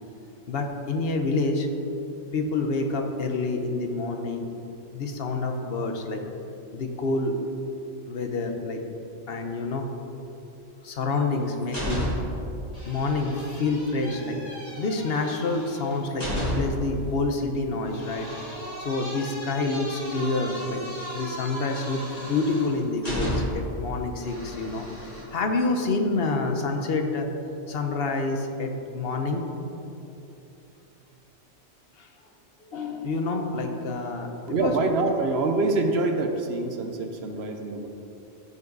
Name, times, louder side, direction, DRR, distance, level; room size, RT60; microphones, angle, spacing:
voice 1, 0.5-1.7 2.3-4.5 4.9-6.2 6.7-7.3 8.1-8.8 9.3-9.9 10.8-12.0 12.8-14.4 14.7-18.3 18.8-20.8 21.1-27.3 27.7-29.4 32.0-32.1 32.7-34.7, left 3 dB, 55° left, 4 dB, 1.0 m, -27 dB
sound 1, 11.1-12.4 12.7-16.9 17.9-23.7 24.2-25.2, equal, 30° left, 2.5 m, -34 dB
voice 2, 34.5-37.9, right 2 dB, 60° right, 5 dB, 1.0 m, -25 dB
14.5 x 5.5 x 4.0 m, 2.9 s
omnidirectional pair, 1.3 m